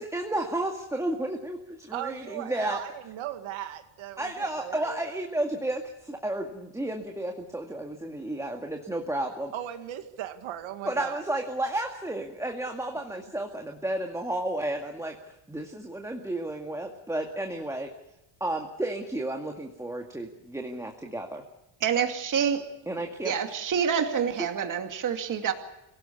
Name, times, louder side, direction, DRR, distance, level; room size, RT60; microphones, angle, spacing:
voice 1, 0.0-2.8 4.2-9.5 10.8-17.9 18.4-21.4 22.9-23.3, right 1 dB, 5° right, 2 dB, 2.1 m, -32 dB
voice 2, 1.9-5.1 9.5-11.2, right 12 dB, 65° right, 8 dB, 2.0 m, -37 dB
voice 3, 21.8-22.7 23.2-25.5, right 7 dB, 40° right, 5 dB, 2.5 m, -27 dB
26.5 x 18.0 x 8.5 m, 0.88 s
cardioid pair, 140°, 50 cm